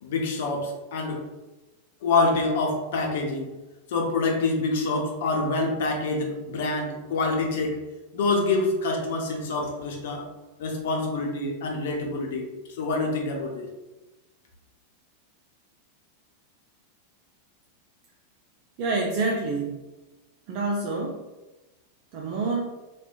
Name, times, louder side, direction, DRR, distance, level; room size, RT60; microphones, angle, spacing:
voice 1, 0.0-1.2 2.0-3.5 3.9-7.8 8.1-10.3 10.6-12.5 12.8-13.7, left 3 dB, 55° left, 2 dB, 0.6 m, -26 dB
voice 2, 18.8-19.8 20.5-21.2 22.1-22.7, right 3 dB, 45° right, -1 dB, 0.4 m, -27 dB
3.2 x 2.8 x 2.3 m, 1.1 s
figure-of-eight pair, 90°, 0 cm